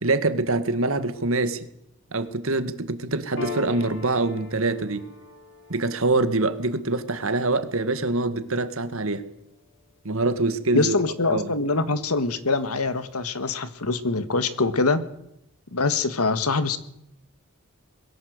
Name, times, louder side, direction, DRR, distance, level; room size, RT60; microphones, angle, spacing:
voice 1, 0.0-1.7 2.1-5.1 5.7-9.2 10.1-10.9 11.3-11.5, right 2 dB, 70° right, 11 dB, 1.8 m, -24 dB
Piano, 3.4-10.3, left 2 dB, 60° left, 3.0 m, -41 dB
voice 2, 10.7-15.0 15.7-16.8, left 3 dB, 90° left, 12 dB, 1.7 m, -24 dB
22.0 x 17.0 x 8.1 m, 0.79 s
head